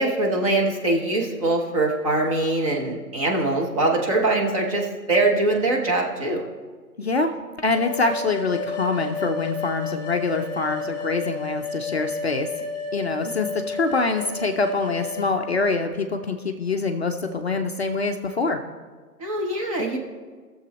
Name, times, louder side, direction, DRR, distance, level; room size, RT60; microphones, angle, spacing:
voice 1, 0.0-6.4 19.2-20.0, right 2 dB, 20° right, -1 dB, 0.9 m, -23 dB
voice 2, 7.0-7.3 7.6-12.5 12.9-18.6, left 3 dB, 45° left, 5 dB, 0.5 m, -25 dB
sound 1, 7.7-15.3, left 4 dB, 15° left, 2.7 m, -32 dB
18.0 x 7.0 x 3.0 m, 1.5 s
figure-of-eight pair, 145°, 48 cm